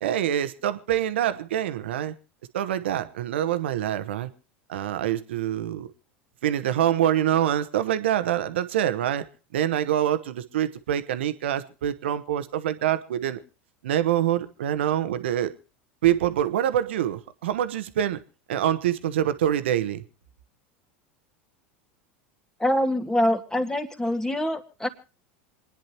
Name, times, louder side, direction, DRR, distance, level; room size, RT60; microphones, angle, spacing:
voice 1, 0.0-2.1 2.5-4.3 4.7-5.9 6.4-9.3 9.5-13.4 13.8-15.5 16.0-18.2 18.5-20.0, right 11 dB, 75° right, 12 dB, 1.2 m, -25 dB
voice 2, 22.6-24.9, left 1 dB, 10° left, 7 dB, 2.3 m, -25 dB
27.5 x 10.5 x 2.9 m, 0.35 s
hypercardioid pair, 85°, 6 cm